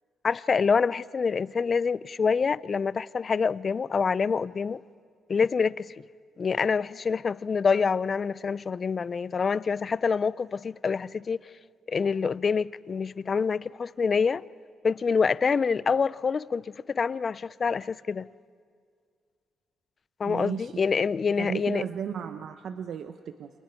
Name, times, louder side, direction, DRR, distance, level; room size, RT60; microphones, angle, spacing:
voice 1, 0.2-4.8 5.3-5.9 6.4-11.5 11.9-14.4 14.8-18.3 20.2-21.8, left 5 dB, 40° left, 0.5 m, -26 dB
voice 2, 20.3-20.7 21.4-23.5, right 7 dB, 65° right, 0.8 m, -34 dB
29.0 x 25.0 x 4.6 m
cardioid pair, 90°, 0 cm